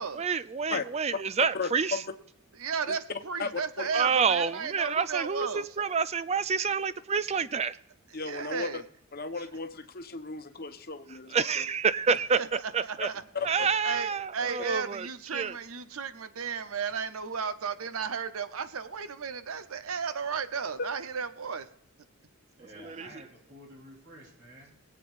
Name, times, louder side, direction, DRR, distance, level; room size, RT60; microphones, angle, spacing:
voice 1, 0.1-2.0 3.9-7.8 11.1-12.4 12.7-13.1 13.4-15.6 22.8-23.1, right 5 dB, 30° right, 0.4 m, -28 dB
voice 2, 1.5-2.0 3.4-3.9 8.1-8.8 9.1-11.6 13.3-13.7, left 4 dB, 45° left, 1.0 m, -35 dB
voice 3, 2.6-5.6 8.2-8.8 12.1-12.5 12.8-13.2 13.8-21.7, right 5 dB, 80° right, 0.8 m, -34 dB
voice 4, 13.1-13.9 22.6-24.8, right 1 dB, 60° right, 4.0 m, -51 dB
23.0 x 8.4 x 2.5 m
head